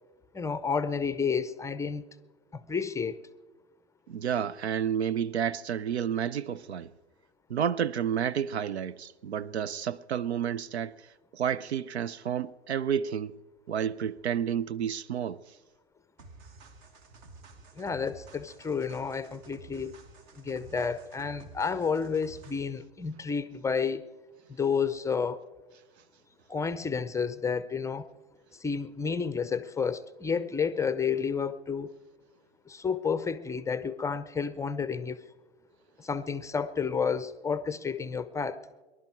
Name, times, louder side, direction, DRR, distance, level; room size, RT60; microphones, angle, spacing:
voice 1, 0.3-2.0 2.5-3.2 17.8-19.9 20.3-24.1 24.5-25.4 26.5-28.1 28.5-31.9 32.7-35.2 36.0-38.6, left 5 dB, 10° left, 0.6 m, -31 dB
voice 2, 4.1-6.9 7.5-11.0 11.3-13.4 13.7-15.4, right 8 dB, 85° right, 0.6 m, -30 dB
sound 1, 16.2-22.8, right 3 dB, 45° right, 1.7 m, -52 dB
24.5 x 11.5 x 4.5 m
hypercardioid pair, 105°, 32 cm